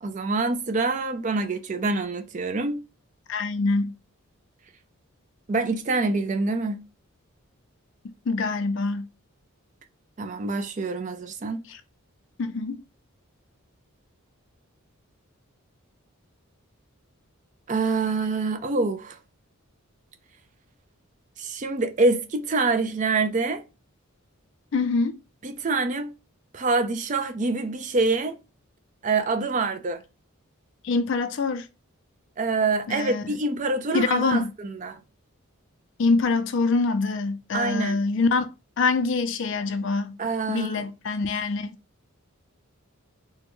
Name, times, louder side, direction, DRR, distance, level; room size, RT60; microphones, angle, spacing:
voice 1, 0.0-2.8 5.5-6.8 10.2-11.6 17.7-19.2 21.4-23.6 25.4-26.1 26.5-28.4 29.0-30.0 32.4-35.0 37.5-38.0 40.2-40.8, right 3 dB, 35° right, 0.4 m, -26 dB
voice 2, 3.3-3.9 8.3-9.1 11.7-11.8 12.4-12.8 24.7-25.1 30.8-31.7 32.9-33.4 33.9-34.5 36.0-38.5 38.8-40.2 40.5-41.8, left 3 dB, 60° left, 0.4 m, -25 dB
3.4 x 2.1 x 2.9 m
head